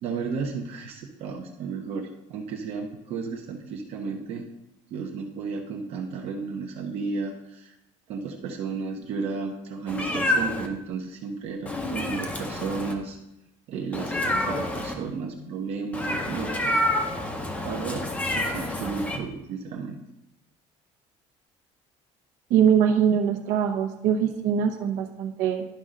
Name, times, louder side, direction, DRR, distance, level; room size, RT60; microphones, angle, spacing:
voice 1, 0.0-4.5 4.9-7.7 8.1-13.2 13.7-16.6 17.6-20.0, right 5 dB, 50° right, 1 dB, 0.8 m, -33 dB
Meow, 9.9-10.7 11.7-12.9 13.9-14.9 15.9-19.2, left 1 dB, 10° left, 0.7 m, -28 dB
voice 2, 22.5-25.6, right 8 dB, 80° right, 2 dB, 0.9 m, -22 dB
11.0 x 5.3 x 3.8 m, 0.87 s
cardioid pair, 175°, 13 cm